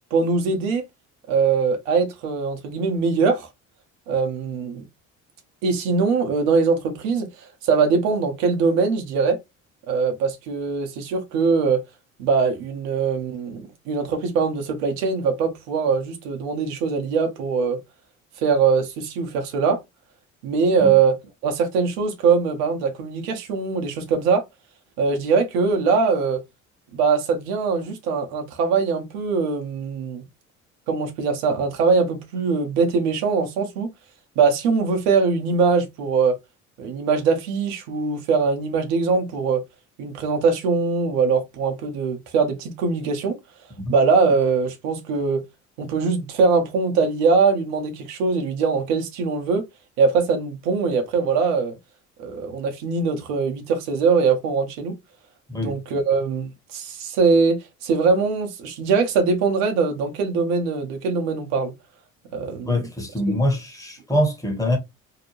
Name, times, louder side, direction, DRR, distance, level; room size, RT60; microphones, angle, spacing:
voice 1, 0.1-0.8 1.3-3.5 4.1-4.9 5.6-7.3 7.6-9.4 9.9-11.8 12.2-17.8 18.4-19.8 20.4-21.2 21.4-24.4 25.0-26.4 26.9-30.2 30.9-33.9 34.4-36.4 36.8-39.6 40.0-43.4 43.9-45.4 45.8-49.6 50.0-51.8 52.2-55.0 55.5-61.7 62.3-62.9, right 5 dB, 75° right, 0.7 m, -22 dB
voice 2, 62.6-64.8, left 1 dB, 10° left, 1.0 m, -24 dB
2.7 x 2.1 x 2.9 m
hypercardioid pair, 65°, 38 cm